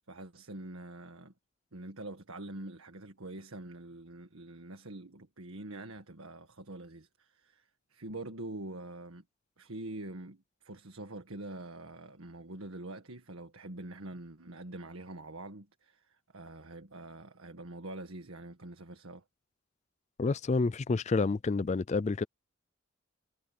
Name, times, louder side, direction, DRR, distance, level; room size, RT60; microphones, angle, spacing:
voice 1, 0.0-1.3 1.7-9.2 9.6-19.2, right 2 dB, 90° right, 1.7 m, -45 dB
voice 2, 20.2-22.2, left 3 dB, 35° left, 0.4 m, -29 dB
head